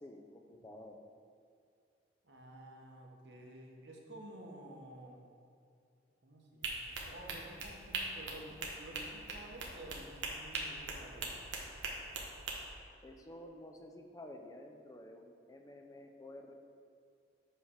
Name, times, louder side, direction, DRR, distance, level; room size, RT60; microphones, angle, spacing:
voice 1, 0.0-1.0 13.0-16.5, left 1 dB, 20° left, 3 dB, 0.4 m, -51 dB
voice 2, 2.2-5.2 6.2-11.3, right 1 dB, 65° right, 0 dB, 1.0 m, -52 dB
sound 1, 6.6-12.6, right 3 dB, 85° right, 1.0 m, -41 dB
7.2 x 3.3 x 5.6 m, 2.4 s
head